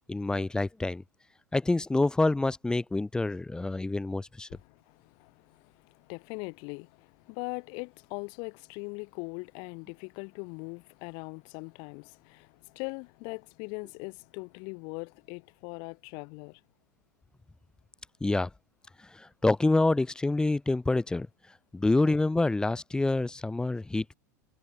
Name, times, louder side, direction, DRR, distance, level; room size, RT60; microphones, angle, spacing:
voice 1, 0.1-1.0 1.5-4.5 18.2-18.5 19.1-21.3 21.7-24.1, left 2 dB, 5° left, 0.5 m, -27 dB
voice 2, 4.5-16.6, left 35 dB, 50° left, 0.6 m, -41 dB
hypercardioid pair, 95°, 10 cm